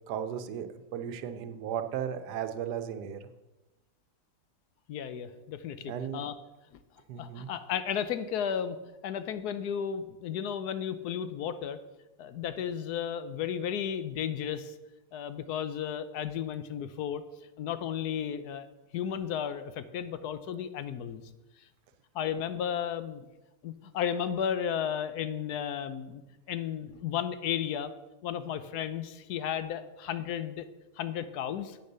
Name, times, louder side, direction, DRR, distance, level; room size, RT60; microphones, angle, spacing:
voice 1, 0.1-3.3 5.9-6.2 7.1-7.5, right 9 dB, 85° right, 9 dB, 1.3 m, -35 dB
voice 2, 4.9-6.3 7.2-8.8 9.0-11.8 12.2-14.7 15.1-17.2 17.6-18.7 18.9-21.2 22.1-23.2 23.6-26.2 26.5-27.9 28.2-30.7 31.0-31.8, left 8 dB, 75° left, 12 dB, 1.2 m, -33 dB
8.4 x 6.7 x 6.7 m, 1.0 s
omnidirectional pair, 1.7 m